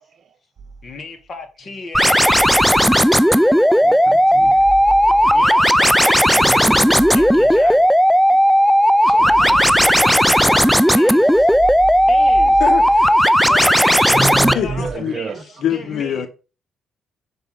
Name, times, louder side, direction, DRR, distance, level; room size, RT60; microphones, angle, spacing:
sound 1, 0.6-1.3 2.0-3.7 4.3-6.1 6.6-8.2 9.0-10.7 11.2-13.7 14.3-14.9, right 4 dB, 35° right, 2.0 m, -35 dB
voice 1, 0.8-2.2 5.2-6.2 7.1-7.9 9.0-11.5 12.1-12.6 13.4-14.2 14.5-16.3, left 3 dB, 40° left, 1.9 m, -35 dB
sound 2, 1.9-14.5, equal, ahead, 0.4 m, -14 dB
voice 2, 3.8-4.7 6.3-7.2 8.5-8.7 9.2-9.8 11.0-11.1 13.9-15.4, right 5 dB, 55° right, 0.7 m, -30 dB
voice 3, 12.6-13.1 14.5-15.1 15.6-16.3, left 9 dB, 70° left, 0.9 m, -24 dB
6.2 x 4.0 x 3.8 m
cardioid pair, 90°, 0 cm